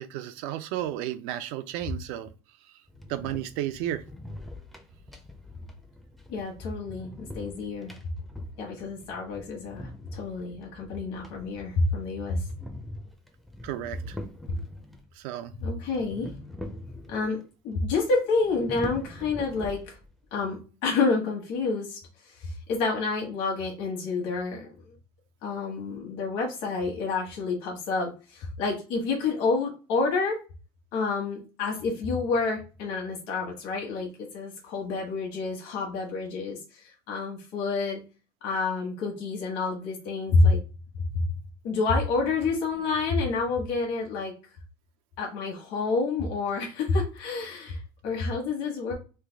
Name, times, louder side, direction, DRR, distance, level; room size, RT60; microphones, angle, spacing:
voice 1, 0.0-2.3 3.1-4.0 13.6-14.2 15.2-15.5, right 12 dB, 80° right, 0.4 m, -33 dB
sound 1, 2.9-15.1 15.9-17.4 17.7-17.8 18.3-20.3, left 1 dB, ahead, 0.4 m, -43 dB
voice 2, 6.3-7.9 8.6-12.5 15.6-16.3 17.1-20.0 20.3-22.0 22.2-24.7 25.4-30.4 30.9-38.0 38.4-40.6 41.6-44.3 45.2-48.9, left 3 dB, 70° left, 1.1 m, -28 dB
3.3 x 2.2 x 3.3 m
cardioid pair, 170°, 10 cm